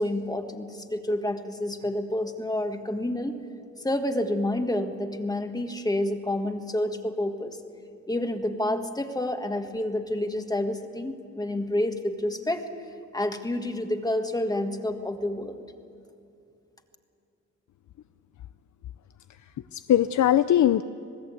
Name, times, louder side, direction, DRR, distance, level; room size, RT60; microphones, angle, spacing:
voice 1, 0.0-3.4 3.8-7.6 8.1-12.7 13.1-15.6, left 1 dB, 15° left, 6 dB, 1.6 m, -29 dB
voice 2, 19.3-20.8, left 11 dB, 75° left, 13 dB, 0.6 m, -22 dB
26.5 x 19.0 x 8.3 m, 2.6 s
wide cardioid pair, 135°, 29 cm